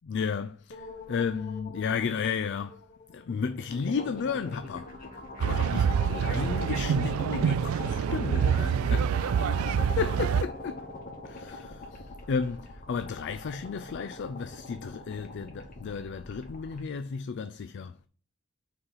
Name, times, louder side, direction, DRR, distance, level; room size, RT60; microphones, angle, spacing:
voice 1, 0.0-2.8 3.1-4.9 5.4-9.1 10.0-10.9 11.2-18.0, left 6 dB, 55° left, 0.4 m, -33 dB
sound 1, 0.7-16.8, left 2 dB, 40° left, 1.5 m, -42 dB
sound 2, 5.4-10.4, right 7 dB, 85° right, 0.3 m, -26 dB
5.6 x 4.2 x 5.5 m
head